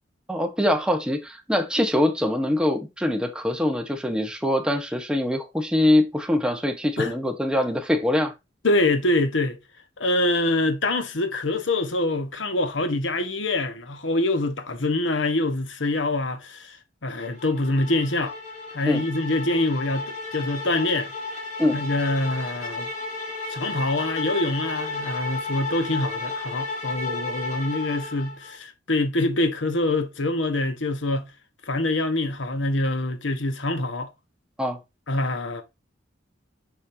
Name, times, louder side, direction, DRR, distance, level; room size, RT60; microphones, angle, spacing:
voice 1, 0.3-8.3 18.9-19.0 21.6-21.8 34.6-34.8, left 1 dB, 5° right, 1.1 m, -23 dB
voice 2, 8.6-9.6 10.0-16.8 17.0-18.3 18.7-21.1 21.7-22.9 23.5-31.3 31.7-34.1 35.1-35.6, left 2 dB, 80° left, 1.3 m, -25 dB
sound 1, 17.2-28.5, left 3 dB, 40° left, 3.5 m, -33 dB
7.3 x 5.3 x 2.8 m
head